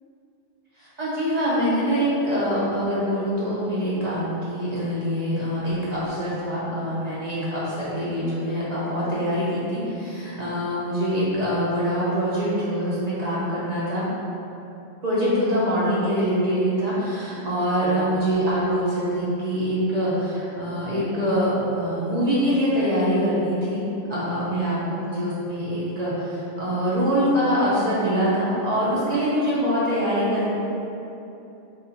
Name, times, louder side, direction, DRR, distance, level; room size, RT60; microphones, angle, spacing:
voice 1, 0.8-14.0 15.0-23.8 24.1-30.5, equal, 50° right, -8 dB, 0.5 m, -24 dB
2.8 x 2.4 x 3.7 m, 2.9 s
omnidirectional pair, 1.3 m